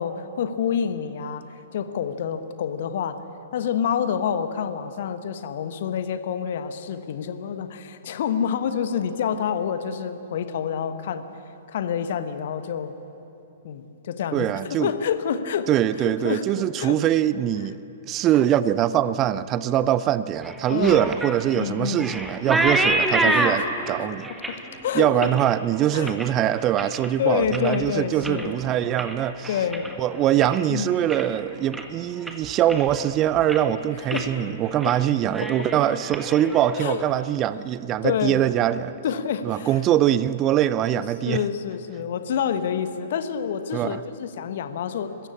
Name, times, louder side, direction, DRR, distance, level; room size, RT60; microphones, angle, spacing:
voice 1, 0.0-1.4 1.7-3.2 3.5-11.2 11.7-12.9 13.6-15.7 16.0-17.0 20.7-21.2 21.5-22.2 23.2-23.7 24.0-24.1 24.5-25.3 25.9-26.1 27.2-28.5 29.5-29.9 30.7-31.0 34.1-34.3 34.8-35.0 36.8-37.0 38.0-38.4 39.0-39.8 40.9-45.3, left 8 dB, 55° left, 1.2 m, -28 dB
voice 2, 14.3-14.9 15.7-17.8 18.1-24.3 24.9-29.6 30.0-39.0 39.4-41.4 43.7-44.0, right 11 dB, 30° right, 0.5 m, -23 dB
sound 1, 20.4-27.1 27.4-27.9 28.2-30.7 31.0-31.4 31.7-31.8 32.3-33.1 33.3-33.7 34.1-34.3 34.6-35.0 35.2-37.1, right 1 dB, 5° right, 1.6 m, -28 dB
21.5 x 14.5 x 8.7 m
figure-of-eight pair, 110°, 0 cm